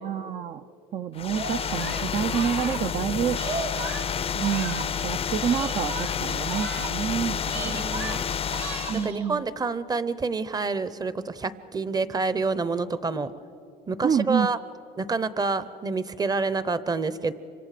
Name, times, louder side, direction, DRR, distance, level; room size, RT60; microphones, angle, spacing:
voice 1, 0.0-0.7 0.9-3.4 4.3-7.9 8.9-9.4 14.0-14.5, right 8 dB, 45° right, 8 dB, 0.5 m, -28 dB
sound 1, 1.2-9.1, left 8 dB, 35° left, 0.5 m, -30 dB
Singing, 1.3-5.1 5.4-7.1 7.4-9.3, right 4 dB, 80° right, 2.4 m, -37 dB
voice 2, 7.5-8.2 8.9-13.3 13.9-14.6 15.0-17.3, right 4 dB, 25° right, 15 dB, 0.8 m, -28 dB
28.5 x 25.0 x 5.0 m, 2.8 s
cardioid pair, 110°, 17 cm